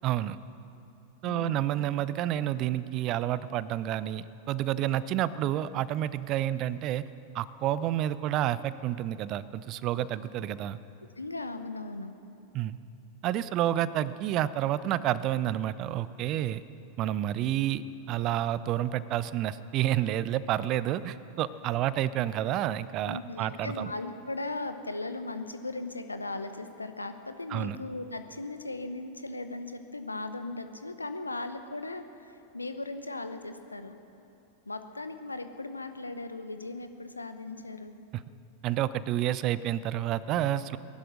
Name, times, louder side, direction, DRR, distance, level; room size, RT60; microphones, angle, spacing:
voice 1, 0.0-0.4 1.2-7.1 7.3-10.8 12.5-12.8 13.2-16.6 17.0-23.9 27.5-27.8 38.1-38.2 38.6-40.8, right 12 dB, 35° right, 17 dB, 0.5 m, -29 dB
voice 2, 1.2-1.6 11.2-12.1 23.1-34.0 34.7-38.0, left 2 dB, 80° left, 9 dB, 0.8 m, -38 dB
18.5 x 11.5 x 6.4 m, 3.0 s
figure-of-eight pair, 90°, 0 cm